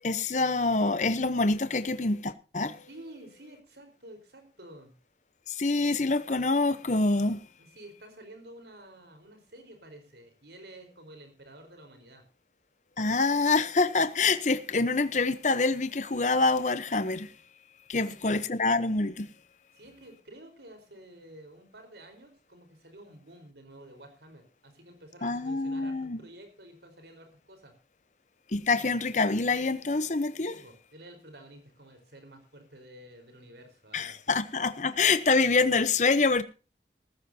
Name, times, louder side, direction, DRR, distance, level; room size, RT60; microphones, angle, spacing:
voice 1, 0.0-2.8 5.5-7.4 13.0-17.3 17.9-19.3 25.2-26.2 28.5-30.5 33.9-36.4, left 3 dB, 40° left, 0.9 m, -26 dB
voice 2, 2.9-4.9 7.6-12.2 18.0-18.4 19.7-27.7 30.5-34.4, right 1 dB, 75° right, 4.5 m, -51 dB
17.5 x 15.0 x 2.8 m
head